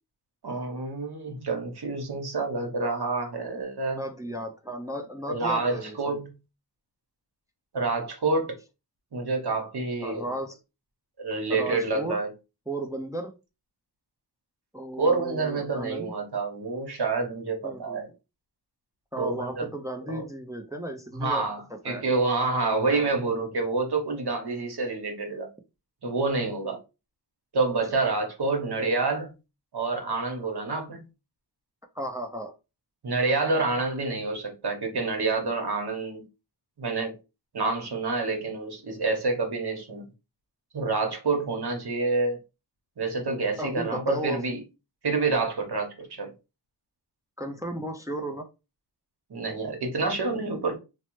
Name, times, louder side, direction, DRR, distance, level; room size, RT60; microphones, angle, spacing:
voice 1, 0.4-4.0 5.3-6.3 7.7-8.6 9.1-10.3 11.2-12.3 15.0-18.1 19.2-19.7 20.1-20.2 21.2-25.5 26.0-26.8 27.5-29.3 29.7-31.0 33.0-36.2 36.8-37.1 37.5-40.0 40.7-42.4 43.0-44.6 45.0-46.3 49.3-50.8, right 3 dB, 60° right, 1.0 m, -28 dB
voice 2, 3.9-6.2 10.0-10.6 11.5-12.2 12.7-13.3 14.7-16.1 17.6-18.0 19.1-21.4 21.9-22.1 22.9-23.1 26.6-26.8 31.9-32.5 43.6-44.4 47.4-48.5, right 1 dB, 10° right, 0.4 m, -35 dB
3.1 x 2.0 x 3.0 m
wide cardioid pair, 75°, 43 cm